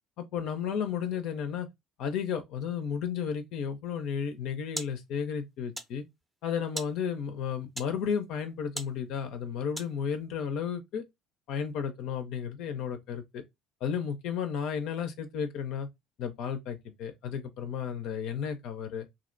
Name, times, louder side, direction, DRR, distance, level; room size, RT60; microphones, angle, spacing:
voice 1, 0.2-1.7 2.0-6.0 6.4-11.0 11.5-13.4 13.8-15.9 16.2-19.1, left 7 dB, 65° left, 0.4 m, -33 dB
sound 1, 4.1-10.2, right 1 dB, 15° right, 0.6 m, -45 dB
2.5 x 2.1 x 2.5 m
hypercardioid pair, 65°, 0 cm